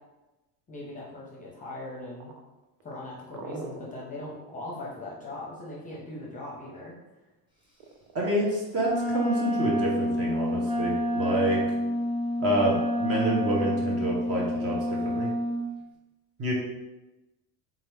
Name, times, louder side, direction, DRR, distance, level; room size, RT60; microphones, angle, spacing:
voice 1, 0.7-2.3 2.8-6.9, left 2 dB, 20° left, -4 dB, 0.7 m, -40 dB
sound 1, 2.0-5.7 7.8-8.4, right 4 dB, 75° right, 0.7 m, -44 dB
voice 2, 8.1-11.6 12.4-15.3 16.4-16.5, right 1 dB, 35° right, -3 dB, 1.0 m, -28 dB
Wind instrument woodwind instrument, 8.8-15.6, left 1 dB, 10° right, 1.0 m, -28 dB
3.8 x 2.9 x 3.4 m, 1.0 s
cardioid pair, 140°, 43 cm